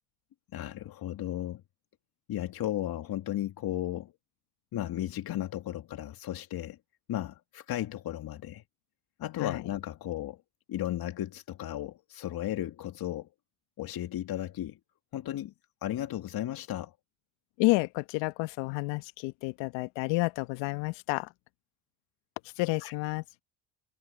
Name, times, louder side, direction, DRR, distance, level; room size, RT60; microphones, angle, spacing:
voice 1, 0.5-1.6 2.3-4.1 4.7-6.8 7.1-8.6 9.2-10.4 10.7-13.3 13.8-14.8 15.1-15.5 15.8-16.9 22.8-22.9, left 13 dB, 50° left, 2.0 m, -35 dB
voice 2, 17.6-21.3 22.6-23.2, left 24 dB, 70° left, 1.2 m, -30 dB
supercardioid pair, 80°, 46 cm